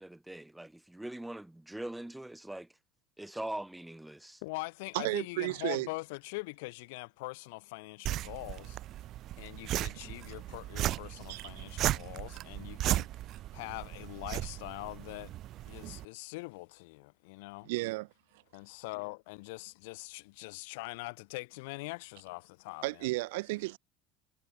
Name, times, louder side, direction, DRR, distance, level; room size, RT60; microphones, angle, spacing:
voice 1, 0.0-2.7 3.2-4.4, right 1 dB, 5° right, 2.6 m, -42 dB
voice 2, 4.4-8.8 9.4-13.1 13.5-15.3 15.7-17.7 18.5-23.1, left 26 dB, 65° left, 5.4 m, -43 dB
voice 3, 4.9-5.9 11.3-11.6 17.6-18.1 22.8-23.8, right 22 dB, 65° right, 2.8 m, -33 dB
sound 1, 8.1-16.1, right 14 dB, 50° right, 0.5 m, -36 dB
figure-of-eight pair, 65°, 0 cm